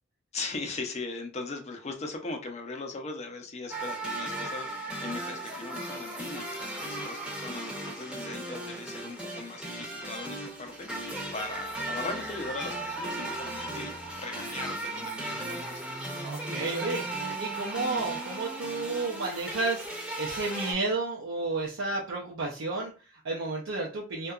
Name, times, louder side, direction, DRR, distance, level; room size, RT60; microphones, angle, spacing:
voice 1, 0.3-15.8, left 3 dB, 35° left, 4 dB, 0.5 m, -39 dB
sound 1, 3.7-20.7, right 1 dB, 5° right, 0.6 m, -36 dB
voice 2, 16.2-19.9 20.2-24.3, right 3 dB, 80° right, -2 dB, 0.5 m, -32 dB
2.7 x 2.2 x 2.3 m, 0.35 s
head